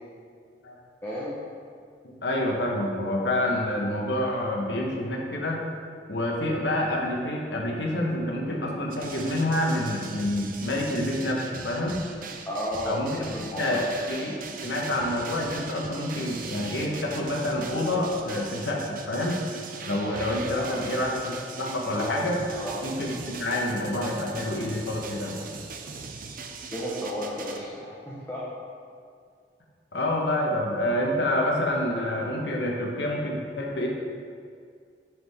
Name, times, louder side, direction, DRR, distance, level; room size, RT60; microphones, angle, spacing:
voice 1, 1.0-1.4 3.6-3.7 12.4-13.0 13.3-13.9 20.6-20.8 22.0-22.2 22.5-22.8 26.7-28.4, equal, 15° left, -9 dB, 1.1 m, -33 dB
voice 2, 2.0-5.6 6.1-12.0 12.8-19.4 19.9-22.4 22.8-25.4 29.9-33.9, left 1 dB, 75° left, -1 dB, 1.2 m, -28 dB
sound 1, 8.9-27.6, right 4 dB, 50° right, 0.6 m, -40 dB
9.7 x 5.0 x 3.6 m, 2.1 s
head